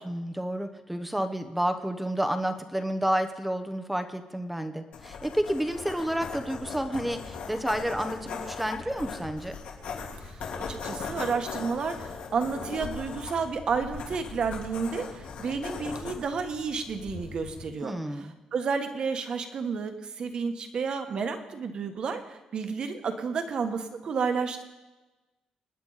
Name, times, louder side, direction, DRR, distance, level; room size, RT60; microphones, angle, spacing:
voice 1, 0.0-9.6 17.8-18.3, right 1 dB, 5° right, 8 dB, 0.9 m, -30 dB
sound 1, 4.9-17.7, left 5 dB, 70° left, 3.2 m, -39 dB
voice 2, 10.7-24.6, right 5 dB, 40° right, 7 dB, 1.4 m, -31 dB
26.5 x 10.0 x 4.1 m, 1.1 s
cardioid pair, 170°, 2 cm